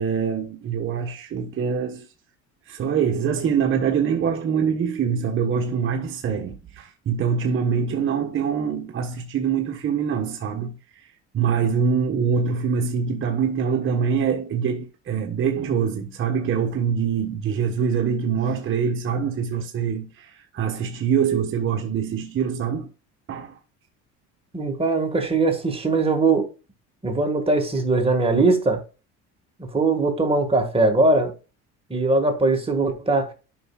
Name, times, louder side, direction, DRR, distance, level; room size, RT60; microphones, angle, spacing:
voice 1, 0.0-2.1 2.7-10.8 11.3-22.9 23.3-23.6, right 7 dB, 40° right, 1.2 m, -24 dB
voice 2, 24.5-26.5 27.0-28.8 29.6-31.3 31.9-33.3, right 3 dB, 15° right, 1.8 m, -21 dB
11.0 x 5.6 x 2.4 m
cardioid pair, 120°, 34 cm